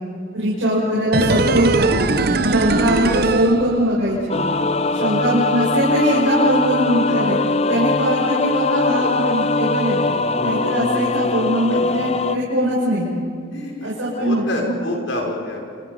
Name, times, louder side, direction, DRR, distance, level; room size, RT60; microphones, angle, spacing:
voice 1, 0.3-2.2 2.4-4.4 4.9-10.0 10.4-13.1 13.8-14.7, right 1 dB, 80° right, -6 dB, 6.6 m, -21 dB
sound 1, 1.1-4.2 4.5-4.6, right 3 dB, 50° right, 0.9 m, -20 dB
sound 2, 4.3-12.4, left 3 dB, 30° left, 0.6 m, -21 dB
voice 2, 13.5-15.6, left 1 dB, 70° left, 0 dB, 5.9 m, -28 dB
29.5 x 29.5 x 5.4 m, 2.3 s
head